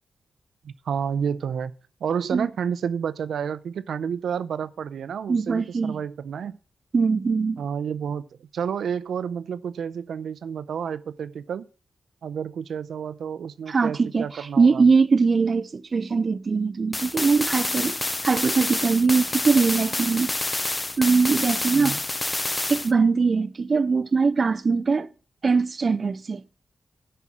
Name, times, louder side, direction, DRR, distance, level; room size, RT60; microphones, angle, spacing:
voice 1, 0.6-6.5 7.6-11.6 12.2-14.9 21.7-22.0, right 7 dB, 85° right, 0.6 m, -30 dB
voice 2, 5.3-6.0 6.9-7.6 13.7-18.0 18.2-20.3 21.0-22.0 22.7-25.1 25.4-26.4, right 4 dB, 40° right, 0.4 m, -21 dB
sound 1, 16.9-22.9, left 2 dB, 20° left, 0.6 m, -28 dB
11.0 x 5.7 x 6.2 m
wide cardioid pair, 140°, 0 cm